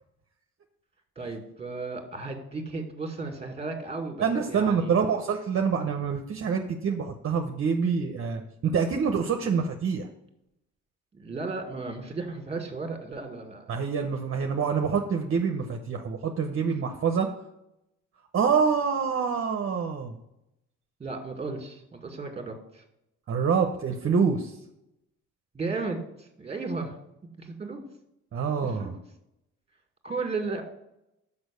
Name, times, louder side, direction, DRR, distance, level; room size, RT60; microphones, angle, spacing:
voice 1, 1.2-4.9 11.1-13.6 21.0-22.8 25.5-27.0 27.4-27.8 28.8-28.9 30.0-30.6, right 3 dB, 20° right, 3 dB, 2.0 m, -34 dB
voice 2, 4.2-10.1 13.7-17.3 18.3-20.2 23.3-24.6 28.3-28.9, right 6 dB, 45° right, 4 dB, 0.8 m, -26 dB
6.2 x 5.5 x 6.8 m, 0.85 s
cardioid pair, 90°, 30 cm